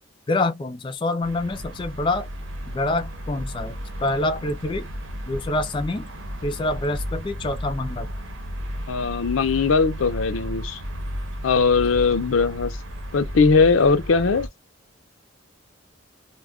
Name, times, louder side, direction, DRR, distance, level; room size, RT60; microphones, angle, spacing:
voice 1, 0.3-2.3 2.7-3.7 4.0-4.9 5.3-6.1 6.4-8.1, left 2 dB, 25° left, 0.3 m, -26 dB
sound 1, 1.2-14.5, equal, 75° right, 0.9 m, -34 dB
voice 2, 8.9-10.8 11.4-12.7 13.1-14.5, left 4 dB, 85° left, 0.5 m, -20 dB
2.3 x 2.1 x 3.4 m
head